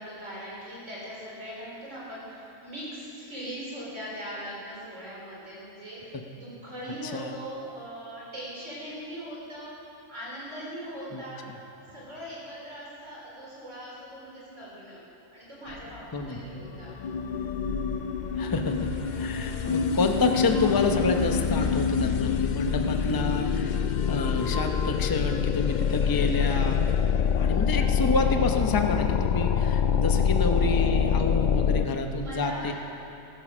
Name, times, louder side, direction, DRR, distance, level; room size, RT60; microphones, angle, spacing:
voice 1, 0.0-9.7 10.1-16.0 16.3-17.0 32.2-32.7, equal, 60° right, -6 dB, 4.2 m, -40 dB
sound 1, 15.7-15.8 16.2-16.3 16.6-31.9, left 7 dB, 85° left, 0.4 m, -26 dB
voice 2, 16.1-16.6 18.4-18.9 19.2-23.8 24.1-26.8 27.3-32.7, left 3 dB, 20° left, 4 dB, 0.7 m, -28 dB
sound 2, 17.3-21.8, equal, 40° left, 3.8 m, -43 dB
15.0 x 13.0 x 6.2 m, 2.8 s
omnidirectional pair, 1.4 m